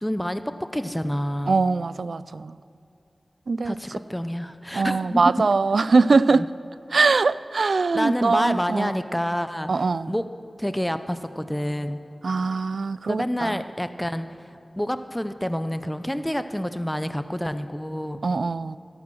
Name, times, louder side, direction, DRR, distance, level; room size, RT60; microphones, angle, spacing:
voice 1, 0.0-1.6 3.6-5.3 6.3-6.5 7.9-10.3 10.6-12.0 13.1-14.5 14.8-18.2, equal, 10° left, 11 dB, 0.6 m, -28 dB
voice 2, 1.5-2.6 3.5-3.8 4.7-6.4 6.9-8.9 9.7-10.1 12.2-13.6 18.2-18.8, right 4 dB, 80° right, 17 dB, 0.3 m, -22 dB
16.5 x 12.0 x 6.3 m, 2.6 s
wide cardioid pair, 55°, 0 cm